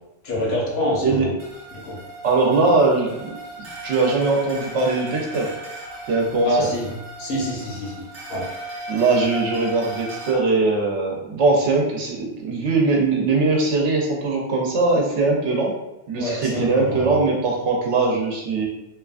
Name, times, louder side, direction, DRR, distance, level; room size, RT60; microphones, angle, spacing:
voice 1, 0.2-1.3 1.7-2.0 6.4-6.9 7.2-8.0 8.3-8.5 16.2-17.2, left 1 dB, 65° left, -2 dB, 0.9 m, -26 dB
sound 1, 1.4-10.4, right 2 dB, 50° right, 0.8 m, -36 dB
voice 2, 2.2-3.4 3.8-5.5 6.1-6.7 8.9-15.7 16.1-18.7, right 3 dB, 75° right, -1 dB, 0.9 m, -21 dB
2.7 x 2.3 x 2.4 m, 0.93 s
omnidirectional pair, 1.2 m